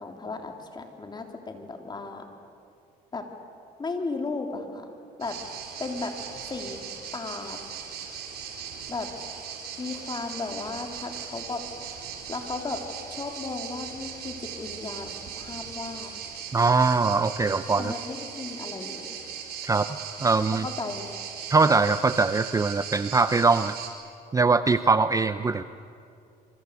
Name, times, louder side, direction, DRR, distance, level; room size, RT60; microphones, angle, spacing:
voice 1, 0.0-2.2 3.1-3.3 3.8-4.9 5.2-5.4 5.8-6.1 6.5-6.8 7.1-7.6 8.9-9.1 9.8-11.6 12.3-12.8 13.1-16.1 17.8-19.1 20.6-21.1, left 3 dB, 25° left, 4 dB, 3.6 m, -35 dB
sound 1, 5.2-23.9, right 7 dB, 70° right, 4.4 m, -39 dB
voice 2, 16.5-17.9 19.6-19.9 20.2-20.7 21.5-23.8 24.3-25.6, right 4 dB, 20° right, 12 dB, 0.6 m, -22 dB
27.0 x 24.5 x 8.4 m, 2.5 s
cardioid pair, 110°, 17 cm